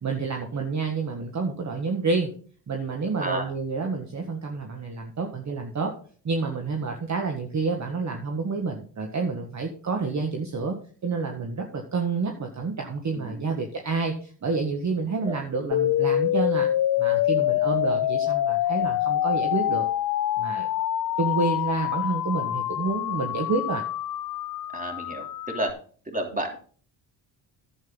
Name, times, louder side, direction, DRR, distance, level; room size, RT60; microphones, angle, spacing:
voice 1, 0.0-2.3 2.7-5.9 6.2-10.8 11.0-16.7 17.0-19.8 20.4-20.7 21.2-23.8, right 4 dB, 35° right, 3 dB, 1.7 m, -29 dB
voice 2, 13.1-13.5 15.2-15.4 24.7-25.7 26.0-26.6, right 1 dB, 15° right, 3 dB, 3.3 m, -31 dB
sound 1, 15.7-25.7, left 12 dB, 45° left, 0.6 m, -26 dB
11.0 x 8.2 x 3.9 m, 0.43 s
supercardioid pair, 70°, 46 cm